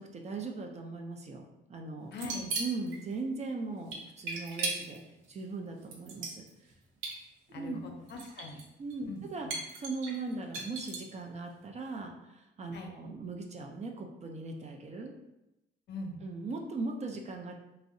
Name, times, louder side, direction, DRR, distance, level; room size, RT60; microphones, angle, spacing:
voice 1, 0.0-1.4 1.7-2.1 2.6-5.0 5.3-6.4 7.5-7.8 8.8-9.5 9.8-15.1 16.2-17.5, right 3 dB, 35° right, 2 dB, 0.4 m, -39 dB
voice 2, 2.1-2.5 7.5-8.6 9.1-9.2 12.7-12.9 15.9-16.2, left 2 dB, 60° left, 2 dB, 0.5 m, -41 dB
sound 1, 2.1-3.0 3.9-5.0 5.8-6.7 7.0-7.2 8.1-8.6 8.9-9.0 9.5-11.1, right 3 dB, 90° right, 0.5 m, -36 dB
2.6 x 2.0 x 2.5 m, 0.90 s
cardioid pair, 90°, 20 cm